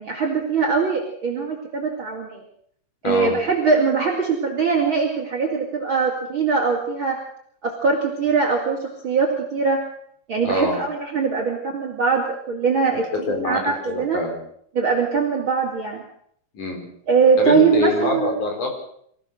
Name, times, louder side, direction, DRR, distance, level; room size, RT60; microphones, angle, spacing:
voice 1, 0.0-2.4 3.0-7.2 7.6-9.8 10.3-13.1 13.4-14.2 14.7-16.0 17.1-18.4, right 5 dB, 35° right, 1 dB, 3.1 m, -21 dB
voice 2, 3.0-3.4 10.4-10.8 13.3-13.6 13.9-14.4 16.5-16.9 17.4-18.7, left 2 dB, 60° left, 3 dB, 5.7 m, -24 dB
25.0 x 16.0 x 6.6 m, 0.67 s
omnidirectional pair, 4.0 m